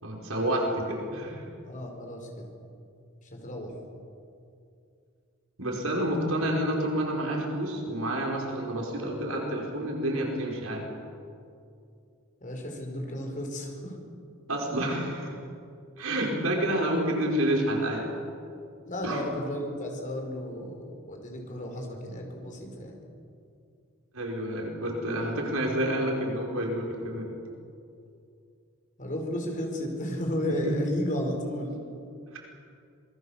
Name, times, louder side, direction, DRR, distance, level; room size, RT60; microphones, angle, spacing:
voice 1, 0.0-1.5 5.6-10.9 14.5-15.4 16.0-18.1 19.0-19.2 24.1-27.3 30.7-30.8 32.3-32.4, right 1 dB, 80° right, -1 dB, 5.4 m, -29 dB
voice 2, 1.6-2.5 3.2-3.8 6.3-6.4 12.4-14.0 16.0-16.2 18.8-23.0 29.0-31.8, left 1 dB, 40° left, 2 dB, 5.0 m, -33 dB
26.5 x 21.0 x 7.4 m, 2.5 s
head